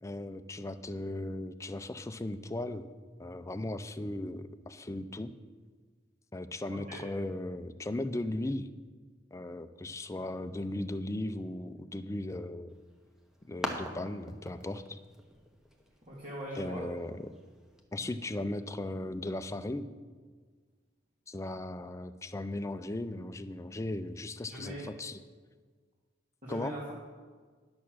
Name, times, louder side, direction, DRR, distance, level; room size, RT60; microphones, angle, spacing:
voice 1, 0.0-2.9 3.2-5.3 6.3-8.7 9.3-12.7 13.5-15.0 16.6-17.3 17.9-19.9 21.3-25.2 26.5-26.7, left 1 dB, 15° left, 10 dB, 0.5 m, -37 dB
voice 2, 6.7-7.0 16.0-16.8 24.5-24.9 26.4-26.9, right 1 dB, 40° right, -6 dB, 2.2 m, -41 dB
sound 1, 12.7-17.8, equal, 5° right, 1.1 m, -44 dB
10.5 x 7.0 x 6.3 m, 1.5 s
head